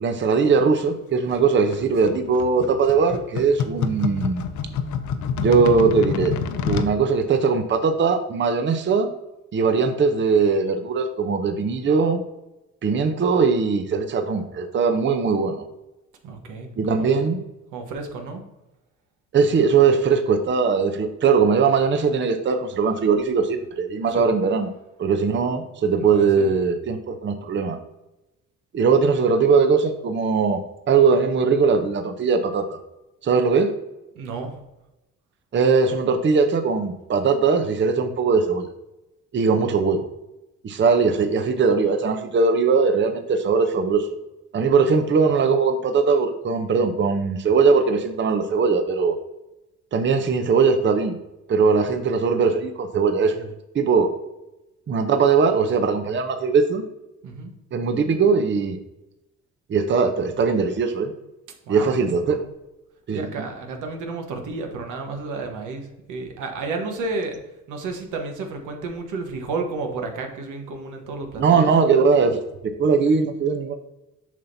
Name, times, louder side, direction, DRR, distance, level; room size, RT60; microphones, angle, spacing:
voice 1, 0.0-4.5 5.4-6.3 6.7-9.1 9.5-12.2 12.8-15.6 16.8-17.4 19.3-24.7 25.0-27.8 28.7-30.6 30.9-32.8 33.2-33.7 35.5-38.7 39.3-40.1 40.6-44.2 44.5-49.2 49.9-51.2 51.5-53.5 53.7-54.1 54.9-56.8 57.7-58.8 59.7-61.1 61.7-62.4 63.1-63.3 71.4-72.4 72.8-73.8, right 5 dB, 40° right, 7 dB, 0.7 m, -20 dB
sound 1, 1.3-6.9, left 6 dB, 70° left, 0.6 m, -28 dB
voice 2, 16.2-17.2 17.7-18.4 24.1-24.2 26.0-26.5 34.1-34.6 57.2-57.5 61.7-61.9 63.1-67.4 67.7-71.7, right 3 dB, 85° right, 3 dB, 1.2 m, -31 dB
7.3 x 5.7 x 2.7 m, 0.96 s
cardioid pair, 90°, 30 cm